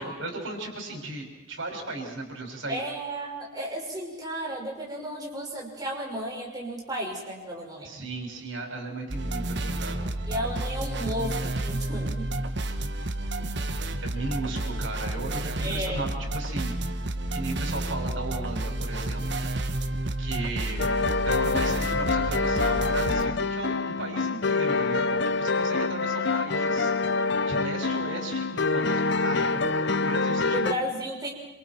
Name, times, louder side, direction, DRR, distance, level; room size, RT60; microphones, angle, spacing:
voice 1, 0.0-2.8 7.8-10.1 14.0-17.0 17.3-19.4 20.2-20.9 21.2-26.9 27.4-30.9, right 2 dB, 90° right, 2 dB, 6.2 m, -36 dB
voice 2, 2.7-7.9 10.3-12.3 13.4-13.5 15.6-16.1 26.4-27.2 30.3-31.3, right 1 dB, 20° right, -2 dB, 5.9 m, -34 dB
sound 1, 9.1-23.2, right 1 dB, 60° right, 1.4 m, -31 dB
sound 2, 20.8-30.7, left 3 dB, 65° left, 0.8 m, -26 dB
27.5 x 27.5 x 4.6 m, 1.1 s
head